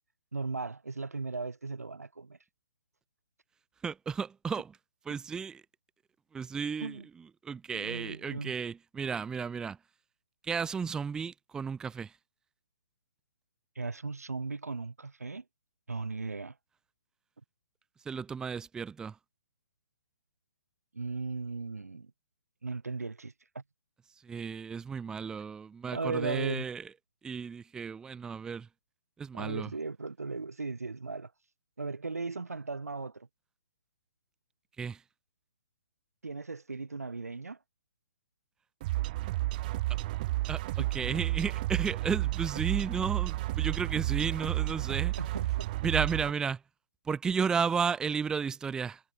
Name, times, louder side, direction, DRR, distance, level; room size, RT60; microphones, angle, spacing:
voice 1, 0.3-2.4 6.8-7.1 7.7-8.5 13.8-15.4 15.9-16.5 20.9-22.1 22.6-23.6 25.9-26.7 29.3-31.3 31.8-33.3 36.2-37.6 44.7-44.8 45.2-45.7, right 3 dB, 75° right, 2.5 m, -37 dB
voice 2, 3.8-4.7 5.1-5.6 6.3-7.0 7.4-9.8 10.5-12.1 18.1-19.1 24.3-26.8 27.2-28.7 29.2-29.7 34.8-35.0 40.5-45.1 45.8-46.6 47.1-49.0, right 6 dB, 10° right, 1.0 m, -33 dB
sound 1, 38.8-46.3, right 18 dB, 35° right, 2.5 m, -31 dB
figure-of-eight pair, 130°, 8 cm